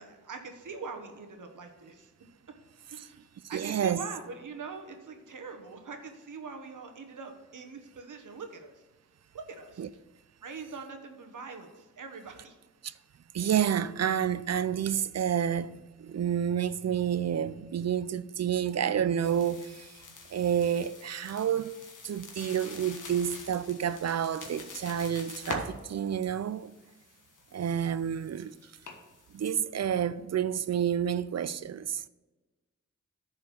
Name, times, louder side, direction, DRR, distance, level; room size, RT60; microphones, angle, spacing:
voice 1, 0.0-2.1 2.9-8.7 9.3-9.9 10.4-12.5, right 4 dB, 85° right, 1.3 m, -43 dB
voice 2, 3.5-4.0 9.8-9.9 12.8-12.9 13.3-20.0 20.3-21.7 22.0-26.8 27.5-28.5 29.3-32.1, right 9 dB, 60° right, 0.5 m, -29 dB
sound 1, 19.2-29.5, left 3 dB, 85° left, 1.4 m, -46 dB
10.5 x 4.4 x 6.9 m
cardioid pair, 60°, 30 cm